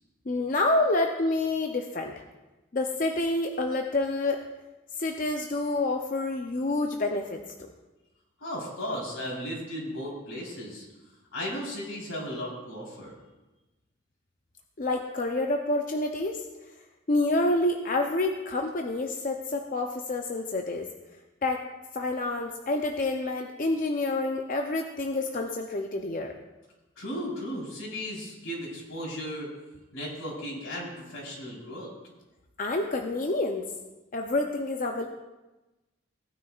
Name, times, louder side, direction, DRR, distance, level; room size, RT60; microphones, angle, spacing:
voice 1, 0.3-2.1 2.7-4.5 5.0-7.7 14.8-16.5 17.1-20.9 21.4-21.6 21.9-26.3 32.6-33.7 34.1-35.1, left 2 dB, 40° left, 3 dB, 0.6 m, -28 dB
voice 2, 8.4-10.8 11.3-13.1 27.0-29.5 29.9-31.9, equal, 85° left, -4 dB, 4.0 m, -35 dB
18.0 x 9.5 x 2.4 m, 1.1 s
head